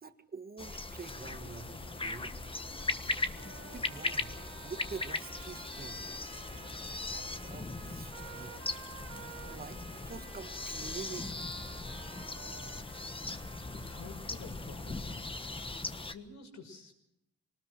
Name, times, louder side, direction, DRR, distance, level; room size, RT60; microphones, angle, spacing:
voice 1, 0.0-2.4 3.6-6.1 7.1-8.8 9.5-11.4, right 5 dB, 30° right, 9 dB, 1.7 m, -47 dB
sound 1, 0.6-16.1, left 2 dB, 20° left, 1.3 m, -39 dB
sound 2, 1.2-7.5, left 4 dB, 50° left, 2.2 m, -55 dB
sound 3, 2.8-14.5, right 6 dB, 60° right, 3.3 m, -53 dB
voice 2, 13.8-15.1 16.1-16.9, left 4 dB, 65° left, 4 dB, 6.0 m, -49 dB
24.0 x 19.5 x 6.4 m, 0.82 s
cardioid pair, 90°, 30 cm